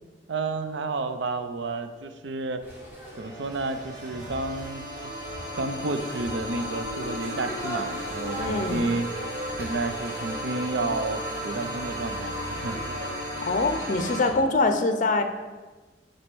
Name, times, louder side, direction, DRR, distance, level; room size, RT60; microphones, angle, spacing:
voice 1, 0.3-2.6 3.2-5.1 5.6-9.1 9.6-12.9, right 3 dB, 80° right, 9 dB, 0.6 m, -31 dB
sound 1, 2.6-13.1, right 1 dB, 10° right, 1.7 m, -41 dB
sound 2, 3.0-14.3, equal, 45° right, 1.6 m, -34 dB
voice 2, 8.4-8.8 13.4-15.2, left 3 dB, 45° left, 8 dB, 0.6 m, -24 dB
6.3 x 4.2 x 6.1 m, 1.3 s
head